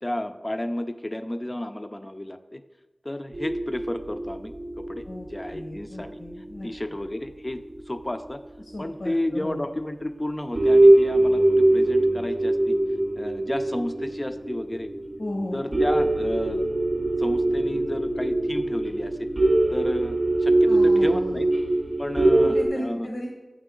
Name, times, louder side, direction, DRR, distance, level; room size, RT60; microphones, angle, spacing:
voice 1, 0.0-2.6 3.0-6.2 6.6-8.4 8.8-12.8 13.2-14.9 15.5-16.6 17.2-19.3 19.7-21.5 22.0-23.1, left 1 dB, 30° left, 9 dB, 0.4 m, -32 dB
sound 1, 3.3-7.3 7.7-7.8 8.9-9.0 9.5-9.6 10.1-10.3 10.5-22.7, right 1 dB, 45° right, 0.6 m, -22 dB
voice 2, 5.5-6.7 8.6-9.6 15.2-15.6 20.6-21.5 22.3-23.3, left 1 dB, 80° left, 0 dB, 0.9 m, -35 dB
6.4 x 5.9 x 3.7 m, 1.2 s
wide cardioid pair, 50°, 0 cm